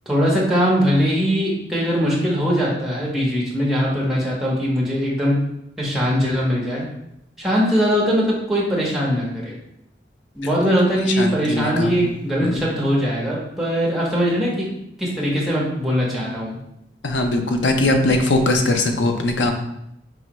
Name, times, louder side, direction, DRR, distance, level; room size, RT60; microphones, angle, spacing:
voice 1, 0.1-5.3 5.8-6.8 7.4-9.5 10.3-14.7 15.0-16.6, equal, ahead, -5 dB, 1.0 m, -21 dB
voice 2, 11.2-11.9 12.4-12.7 17.0-19.5, left 2 dB, 85° left, 4 dB, 0.6 m, -20 dB
4.8 x 3.2 x 3.0 m, 0.80 s
head